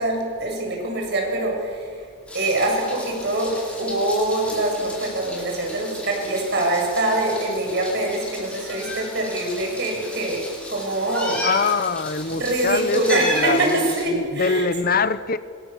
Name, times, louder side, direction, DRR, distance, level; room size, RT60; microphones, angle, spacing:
voice 1, 0.0-1.9 2.3-11.5 12.3-14.7, right 1 dB, 55° right, 1 dB, 7.9 m, -24 dB
Meow, 2.3-14.1, left 1 dB, 5° left, 7.4 m, -34 dB
voice 2, 11.4-15.4, left 4 dB, 45° left, 13 dB, 0.9 m, -23 dB
29.5 x 27.0 x 7.3 m, 2.2 s
head